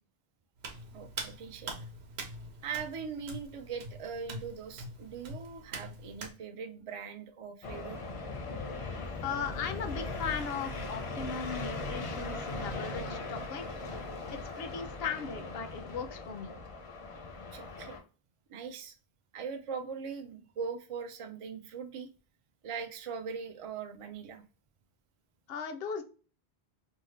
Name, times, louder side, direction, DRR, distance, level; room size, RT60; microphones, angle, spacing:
Hands, 0.6-6.3, right 2 dB, 80° right, 1.0 m, -44 dB
voice 1, 0.9-1.7 2.6-8.0 14.0-14.2 17.5-18.0 18.5-18.9 19.3-22.1 22.6-24.4, right 6 dB, 60° right, 6 dB, 0.3 m, -41 dB
sound 1, 7.6-18.0, left 3 dB, 45° left, 0.5 m, -39 dB
voice 2, 9.2-13.8 14.3-16.6 25.5-26.0, left 6 dB, 70° left, 8 dB, 0.8 m, -38 dB
2.7 x 2.3 x 3.1 m, 0.35 s
omnidirectional pair, 1.1 m